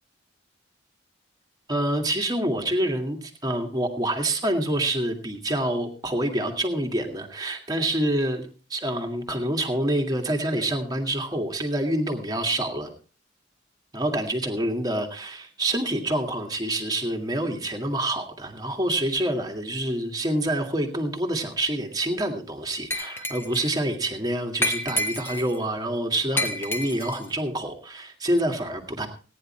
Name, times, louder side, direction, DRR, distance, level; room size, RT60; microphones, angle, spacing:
voice 1, 1.7-12.9 13.9-29.1, right 1 dB, 20° right, 3 dB, 2.0 m, -27 dB
Glass, 22.9-23.7 24.6-25.6 26.4-27.3, left 1 dB, 10° left, 1.4 m, -29 dB
17.5 x 10.0 x 4.3 m, 0.38 s
head